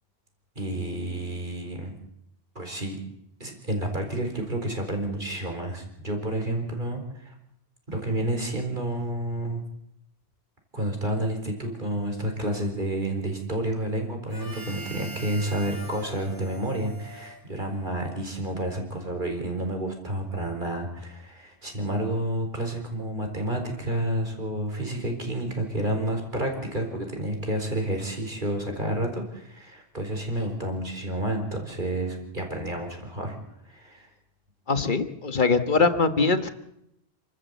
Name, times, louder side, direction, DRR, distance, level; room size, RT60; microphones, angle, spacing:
voice 1, 0.6-1.9 2.5-3.0 3.4-7.3 7.9-9.6 10.7-33.4 33.6-34.1, right 1 dB, 50° right, 3 dB, 4.7 m, -30 dB
Harmonica, 14.3-18.1, right 2 dB, 20° right, 4.0 m, -43 dB
voice 2, 34.7-36.5, left 4 dB, 50° left, 10 dB, 1.5 m, -22 dB
29.5 x 13.5 x 8.2 m, 0.78 s
omnidirectional pair, 1.1 m